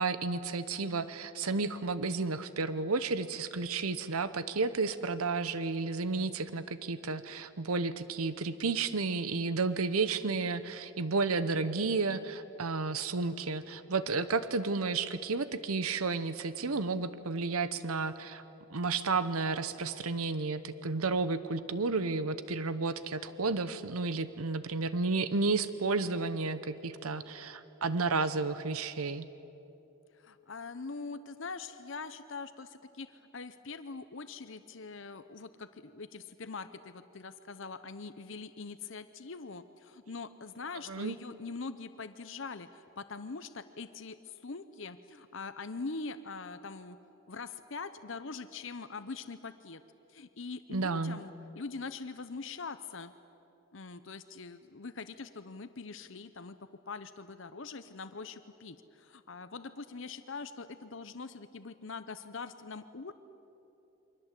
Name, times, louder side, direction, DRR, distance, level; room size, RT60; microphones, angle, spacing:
voice 1, 0.0-18.4 18.7-29.3 40.9-41.2 50.7-51.2, right 3 dB, 85° right, 13 dB, 0.9 m, -32 dB
voice 2, 30.2-47.0 47.3-49.8 50.1-53.1 53.7-56.6 56.9-63.1, left 4 dB, 60° left, 11 dB, 0.8 m, -43 dB
28.5 x 24.0 x 8.4 m, 3.0 s
head